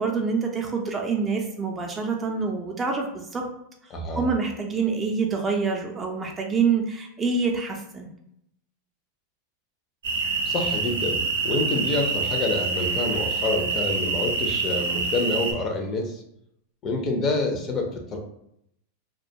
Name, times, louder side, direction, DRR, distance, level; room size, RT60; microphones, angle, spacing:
voice 1, 0.0-3.5 4.1-8.1, right 5 dB, 20° right, 2 dB, 0.4 m, -26 dB
voice 2, 3.9-4.3 10.4-16.2 16.8-18.2, left 2 dB, 35° left, 3 dB, 0.5 m, -27 dB
sound 1, 10.0-15.5, right 4 dB, 85° right, 0.5 m, -26 dB
2.3 x 2.2 x 2.7 m, 0.75 s
hypercardioid pair, 120°, 0 cm